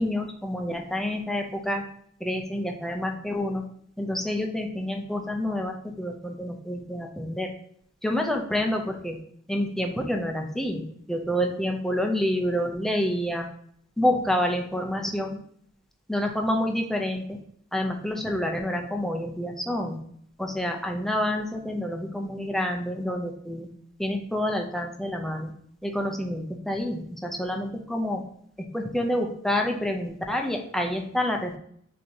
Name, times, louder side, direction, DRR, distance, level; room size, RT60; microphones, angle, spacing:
voice 1, 0.0-1.8 2.2-3.6 4.0-7.5 8.0-9.2 9.5-13.5 14.0-15.4 16.1-17.4 17.7-20.0 20.4-23.7 24.0-25.5 25.8-28.2 28.7-31.6, left 1 dB, ahead, 2 dB, 0.6 m, -28 dB
6.5 x 2.9 x 2.8 m, 0.65 s
head